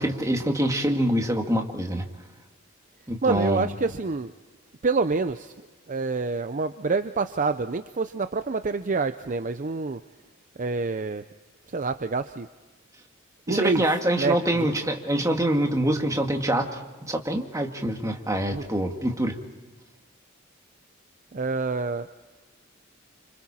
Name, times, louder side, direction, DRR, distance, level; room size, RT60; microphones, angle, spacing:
voice 1, 0.0-2.1 3.1-3.7 13.5-19.4, right 1 dB, 15° right, 3 dB, 2.1 m, -25 dB
voice 2, 3.2-4.3 4.8-5.5 5.9-10.0 10.6-11.2 11.7-12.5 13.5-13.8 14.2-14.7 18.5-18.6 21.3-22.1, right 4 dB, 40° right, 10 dB, 0.6 m, -27 dB
30.0 x 26.0 x 4.3 m, 1.3 s
head